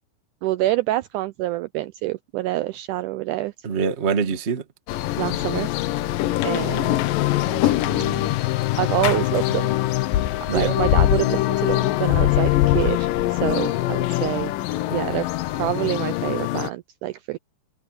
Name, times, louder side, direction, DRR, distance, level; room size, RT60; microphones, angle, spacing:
voice 1, 0.4-3.5 5.2-5.7 6.4-7.0 8.8-9.7 10.5-14.5 14.9-15.3 15.5-17.4, right 16 dB, 80° right, 1.8 m, -26 dB
voice 2, 3.6-4.6 7.5-8.3 10.5-10.8, right 6 dB, 40° right, 0.9 m, -26 dB
sound 1, 4.9-16.7, left 15 dB, 75° left, 2.4 m, -22 dB
omnidirectional pair, 4.1 m